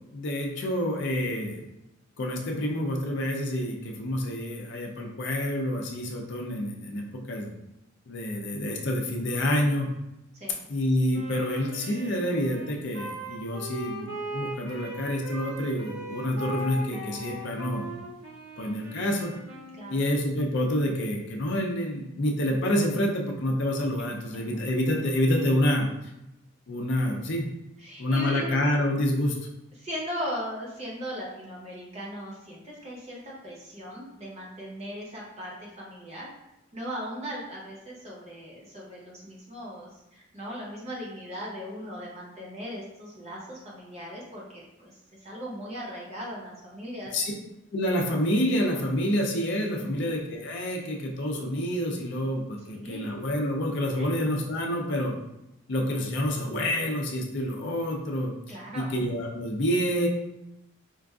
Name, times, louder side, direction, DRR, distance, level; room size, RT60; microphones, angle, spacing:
voice 1, 0.1-1.6 2.2-7.5 8.1-9.9 10.7-17.9 18.6-19.3 19.9-25.9 26.7-27.4 28.0-29.3 47.1-47.3 47.7-55.1 55.7-60.1, left 1 dB, 55° left, 0 dB, 0.5 m, -28 dB
Wind instrument woodwind instrument, 11.1-20.1, right 1 dB, 70° right, 1.0 m, -39 dB
voice 2, 27.8-28.7 29.8-36.3 36.7-44.9 45.2-47.1 49.8-50.0 52.7-53.1 54.0-54.1 58.5-58.9, equal, 30° right, -4 dB, 0.8 m, -38 dB
4.5 x 2.4 x 2.3 m, 0.90 s
head